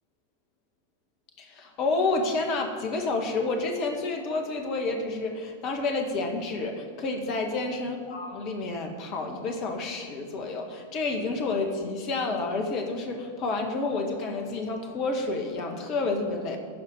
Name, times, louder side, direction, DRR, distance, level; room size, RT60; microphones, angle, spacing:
voice 1, 1.4-16.6, left 3 dB, 40° left, 3 dB, 1.8 m, -29 dB
13.5 x 4.9 x 9.0 m, 2.1 s
figure-of-eight pair, 90°, 0 cm